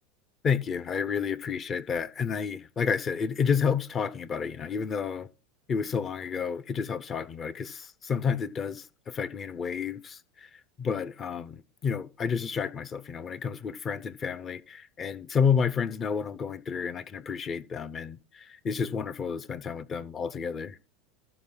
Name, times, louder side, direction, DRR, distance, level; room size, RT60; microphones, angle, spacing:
voice 1, 0.4-5.3 5.7-10.5 10.8-20.8, left 6 dB, 30° left, 0.8 m, -30 dB
14.0 x 5.0 x 6.2 m
figure-of-eight pair, 75°, 0 cm